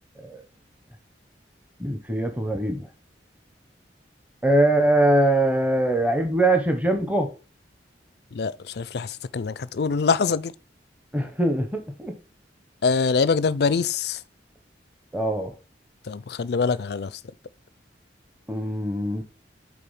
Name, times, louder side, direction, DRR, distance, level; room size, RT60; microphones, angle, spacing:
voice 1, 1.8-2.9 4.4-7.3 11.1-12.1 15.1-15.5 18.5-19.2, right 1 dB, 10° right, 0.8 m, -22 dB
voice 2, 8.3-10.5 12.8-14.2 16.1-17.2, left 5 dB, 60° left, 0.4 m, -24 dB
8.4 x 3.8 x 5.5 m
head